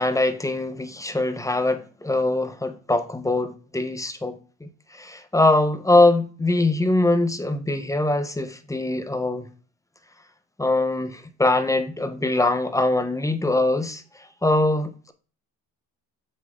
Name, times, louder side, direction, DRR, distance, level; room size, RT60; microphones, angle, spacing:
voice 1, 0.0-4.7 5.0-9.5 10.6-14.0 14.4-15.1, left 2 dB, 10° left, 1.1 m, -22 dB
7.3 x 6.2 x 3.8 m
supercardioid pair, 70°, 42 cm